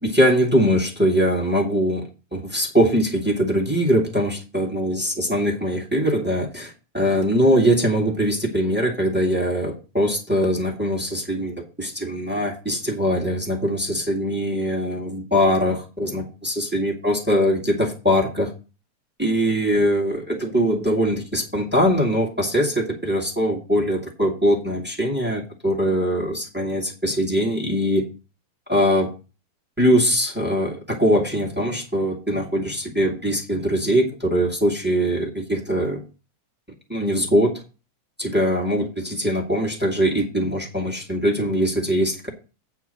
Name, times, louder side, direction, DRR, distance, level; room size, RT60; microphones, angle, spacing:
voice 1, 0.0-18.5 19.2-28.0 28.7-29.1 29.8-36.0 36.9-37.6 38.2-42.3, equal, 5° right, -1 dB, 1.3 m, -22 dB
8.9 x 4.8 x 7.5 m, 0.32 s
omnidirectional pair, 3.3 m